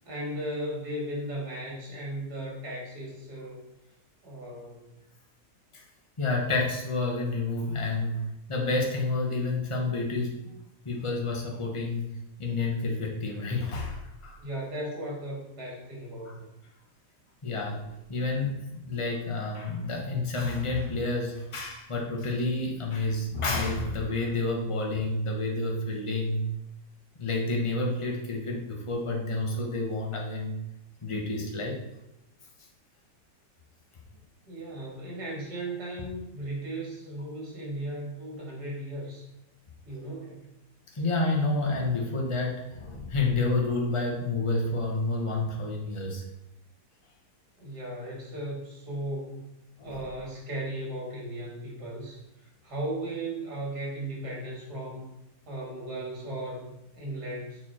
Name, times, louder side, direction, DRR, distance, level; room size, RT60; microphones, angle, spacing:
voice 1, 0.0-3.6 4.2-4.8 14.4-16.6 34.5-39.2 39.8-40.5 47.6-49.4 49.8-55.1 55.5-56.7 57.0-57.6, right 1 dB, 60° right, -3 dB, 3.0 m, -36 dB
voice 2, 6.2-8.2 8.5-10.4 10.8-12.1 12.4-14.4 16.3-16.4 17.4-26.4 27.1-30.6 31.0-31.8 40.9-46.2 49.8-50.0, left 3 dB, 20° left, 0 dB, 1.0 m, -29 dB
6.9 x 4.7 x 4.4 m, 0.85 s
omnidirectional pair, 1.9 m